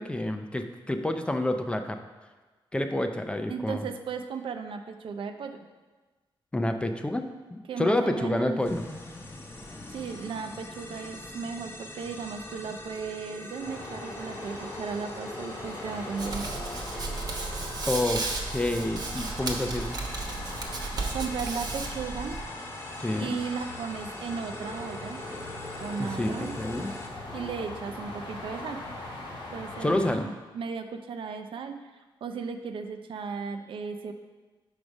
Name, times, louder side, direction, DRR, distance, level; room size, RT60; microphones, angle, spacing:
voice 1, 0.0-2.0 2.7-3.9 6.5-7.2 7.5-8.8 17.9-18.2 18.5-20.0 23.0-23.4 26.0-26.9 29.8-30.3, left 1 dB, 10° left, 6 dB, 0.4 m, -28 dB
voice 2, 3.5-5.6 7.7-8.8 9.9-16.5 21.1-22.4 23.1-25.2 25.8-26.5 27.3-28.8 29.5-34.1, right 5 dB, 75° right, 7 dB, 0.5 m, -36 dB
sound 1, 8.6-27.1, left 2 dB, 30° left, 0.9 m, -43 dB
sound 2, 13.6-30.2, left 2 dB, 85° left, 1.6 m, -41 dB
Hands, 16.2-22.4, right 3 dB, 50° right, 0.9 m, -34 dB
6.1 x 4.9 x 5.2 m, 1.3 s
wide cardioid pair, 130°, 9 cm